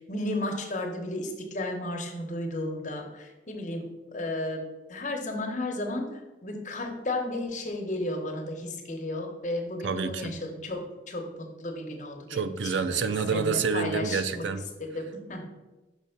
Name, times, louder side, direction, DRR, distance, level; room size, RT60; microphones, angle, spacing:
voice 1, 0.0-4.6 4.9-6.1 6.4-11.3 11.6-12.4 12.9-14.5 14.8-15.5, left 1 dB, 45° left, 2 dB, 1.0 m, -33 dB
voice 2, 9.8-10.3 12.3-14.6, right 5 dB, 90° right, 11 dB, 0.4 m, -28 dB
6.0 x 3.4 x 5.8 m, 1.1 s
head